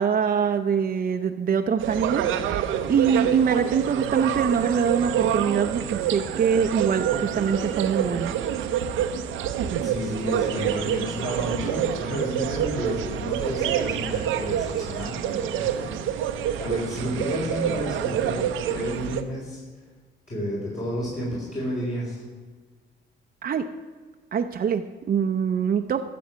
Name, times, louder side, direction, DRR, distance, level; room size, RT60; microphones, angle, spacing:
voice 1, 0.0-8.3 23.4-23.6 24.3-26.0, right 7 dB, 45° right, 5 dB, 0.7 m, -24 dB
sound 1, 1.8-19.2, right 9 dB, 85° right, 0.8 m, -27 dB
voice 2, 9.8-16.3 16.6-19.6 20.3-22.2, equal, 35° left, -7 dB, 4.2 m, -31 dB
13.0 x 7.0 x 6.3 m, 1.4 s
cardioid pair, 90°, 20 cm